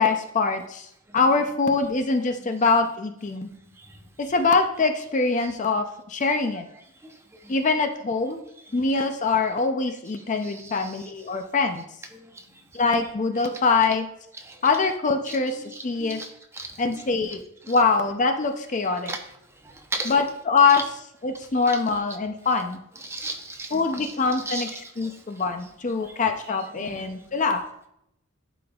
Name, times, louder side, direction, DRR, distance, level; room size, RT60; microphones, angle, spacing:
voice 1, 0.0-3.5 4.2-6.7 7.5-8.4 8.7-11.8 12.7-14.1 14.6-16.2 16.8-19.1 20.0-20.8 21.2-22.8 23.7-27.6, left 4 dB, 35° left, 7 dB, 0.5 m, -24 dB
voice 2, 10.4-10.9 14.4-14.6 15.3-15.4 15.6-16.3 16.5-16.7 17.7-17.8 19.1-19.2 19.6-20.1 23.0-24.1 24.5-25.1 26.8-27.0, right 2 dB, 10° right, 4 dB, 0.6 m, -35 dB
11.5 x 5.1 x 2.3 m, 0.77 s
head